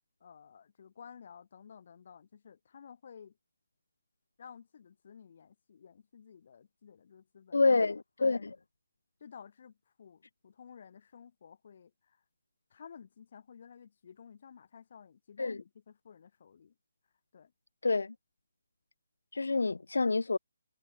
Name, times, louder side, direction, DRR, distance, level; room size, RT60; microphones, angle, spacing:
voice 1, 0.2-3.4 4.4-7.6 8.2-8.5 9.2-12.2 12.7-16.7 17.3-17.5, left 7 dB, 55° left, 1.6 m, -53 dB
voice 2, 7.5-8.5 15.4-15.6 17.8-18.1 19.3-20.4, left 3 dB, 80° left, 0.5 m, -28 dB
figure-of-eight pair, 145°, 0 cm